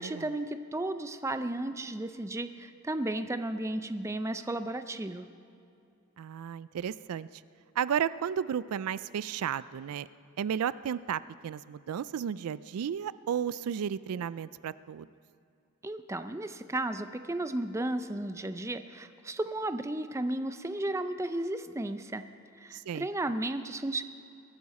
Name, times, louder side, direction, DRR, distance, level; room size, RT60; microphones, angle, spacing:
voice 1, 0.0-5.3 15.8-22.2 22.6-24.0, right 1 dB, 15° right, 10 dB, 0.4 m, -34 dB
voice 2, 6.2-7.3 7.8-10.1 10.4-15.1 22.7-23.1, right 8 dB, 75° right, 17 dB, 0.3 m, -33 dB
22.5 x 13.5 x 4.2 m, 2.6 s
head